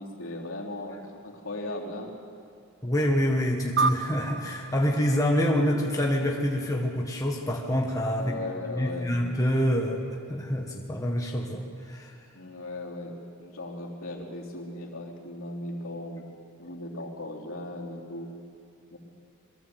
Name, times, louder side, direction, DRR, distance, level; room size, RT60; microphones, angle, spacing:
voice 1, 0.0-2.1 8.2-9.1 12.3-13.1 13.4-16.2 16.6-18.3 18.9-19.0, left 1 dB, 65° left, -2 dB, 3.4 m, -37 dB
voice 2, 2.8-8.3 8.7-12.1, equal, 15° left, -1 dB, 1.4 m, -26 dB
sound 1, 3.8-6.5, right 4 dB, 50° right, 0.6 m, -31 dB
23.0 x 15.0 x 7.9 m, 2.4 s
head